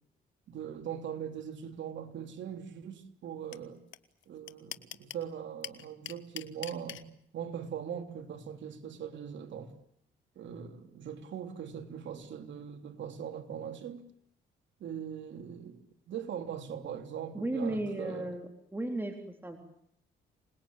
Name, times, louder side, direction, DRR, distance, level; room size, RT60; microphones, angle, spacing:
voice 1, 0.5-3.8 4.3-9.7 10.3-14.0 14.8-18.3, right 8 dB, 70° right, 3.4 m, -41 dB
sound 1, 3.5-3.6 3.9-4.0 4.2-5.2 5.6-7.0, left 12 dB, 75° left, 1.5 m, -40 dB
voice 2, 17.3-19.6, right 1 dB, 10° right, 3.7 m, -35 dB
27.0 x 20.5 x 9.0 m
cardioid pair, 90°, 20 cm